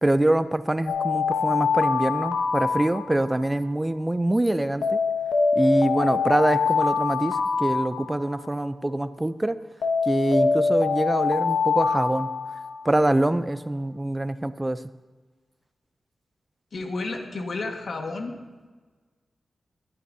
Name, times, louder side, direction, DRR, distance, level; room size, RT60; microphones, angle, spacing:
voice 1, 0.0-5.0 5.6-9.6 10.1-12.3 12.8-14.8, right 1 dB, 20° right, 14 dB, 0.4 m, -24 dB
Alarm, 0.9-3.5 4.8-8.5 9.8-13.0, left 5 dB, 90° left, 1.0 m, -24 dB
voice 2, 16.7-18.4, left 3 dB, 65° left, 3 dB, 1.5 m, -31 dB
13.5 x 12.5 x 2.7 m, 1.3 s
cardioid pair, 55°, 0 cm